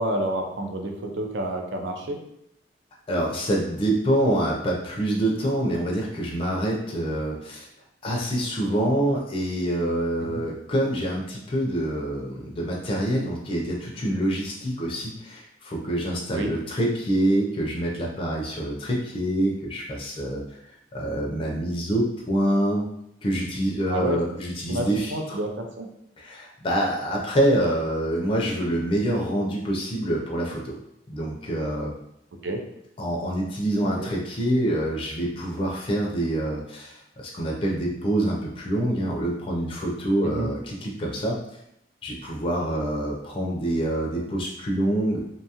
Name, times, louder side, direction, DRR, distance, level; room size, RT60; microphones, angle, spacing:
voice 1, 0.0-2.2 10.2-10.4 16.3-16.5 23.9-24.2 24.7-25.9 32.4-32.6 34.0-34.1 40.2-40.5, right 1 dB, 70° right, 3 dB, 0.5 m, -29 dB
voice 2, 3.1-7.6 8.0-20.4 20.9-22.9 23.2-25.4 26.2-30.8 31.1-31.9 33.0-41.4 42.0-45.2, right 1 dB, 30° left, -2 dB, 0.4 m, -26 dB
2.7 x 2.3 x 2.8 m, 0.77 s
head